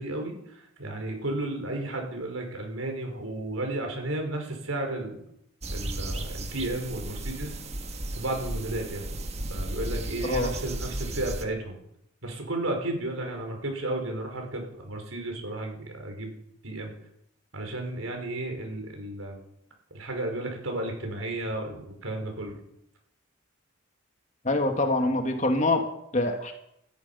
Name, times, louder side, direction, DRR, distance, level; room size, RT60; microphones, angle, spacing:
voice 1, 0.0-5.2 5.7-7.5 8.1-11.8 12.2-16.4 16.6-16.9 17.5-19.4 19.9-22.6, right 2 dB, 90° right, 3 dB, 5.3 m, -33 dB
sound 1, 5.6-11.5, right 1 dB, 30° right, 1.6 m, -34 dB
voice 2, 24.4-25.8 26.1-26.5, left 2 dB, 35° left, 4 dB, 2.1 m, -25 dB
18.0 x 13.5 x 5.7 m, 0.76 s
head